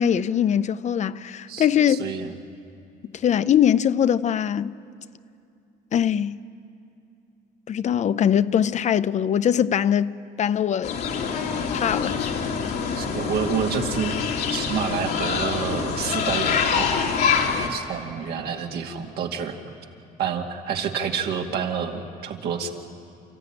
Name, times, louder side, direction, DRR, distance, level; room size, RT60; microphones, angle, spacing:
voice 1, 0.0-2.1 3.2-4.7 5.9-6.4 7.7-10.1 10.4-11.0 11.7-12.2, left 9 dB, 45° left, 0.6 m, -22 dB
voice 2, 1.5-2.3 13.0-14.2 14.5-16.9 17.7-19.7 20.2-22.7, right 7 dB, 70° right, 2.3 m, -28 dB
sound 1, 10.8-17.7, left 6 dB, 70° left, 2.8 m, -25 dB
29.5 x 14.5 x 10.0 m
cardioid pair, 110°, 17 cm